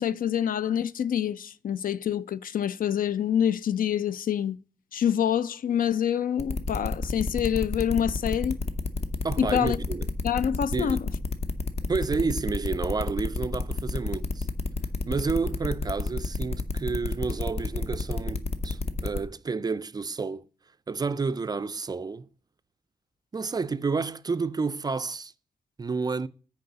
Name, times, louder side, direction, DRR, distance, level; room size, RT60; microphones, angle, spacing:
voice 1, 0.0-4.6 4.9-8.6 9.4-9.8 10.2-11.0, left 9 dB, 70° left, 0.4 m, -26 dB
sound 1, 6.4-19.2, left 3 dB, 45° left, 0.8 m, -30 dB
voice 2, 9.2-10.1 10.7-11.0 11.9-14.5 15.1-20.5 20.9-22.3 23.3-25.3 25.8-26.3, right 4 dB, 25° right, 0.3 m, -30 dB
6.5 x 4.7 x 6.8 m
wide cardioid pair, 135°, 15 cm